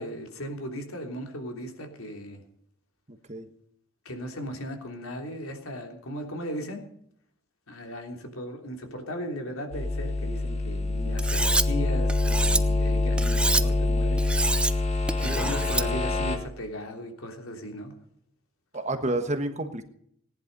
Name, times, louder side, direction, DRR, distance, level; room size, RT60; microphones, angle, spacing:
voice 1, 0.0-2.4 4.0-6.8 7.7-14.3 15.2-17.9, equal, 80° left, 3 dB, 3.3 m, -37 dB
voice 2, 3.1-3.5 18.7-19.8, right 2 dB, 30° right, 8 dB, 1.3 m, -30 dB
sound 1, 9.7-16.4, left 2 dB, 30° left, 1.9 m, -25 dB
Cutlery silverware, 11.2-11.6 12.1-12.6 13.2-13.6 14.2-14.7 15.1-15.8, right 2 dB, 5° right, 0.5 m, -27 dB
18.5 x 11.0 x 5.4 m, 0.67 s
head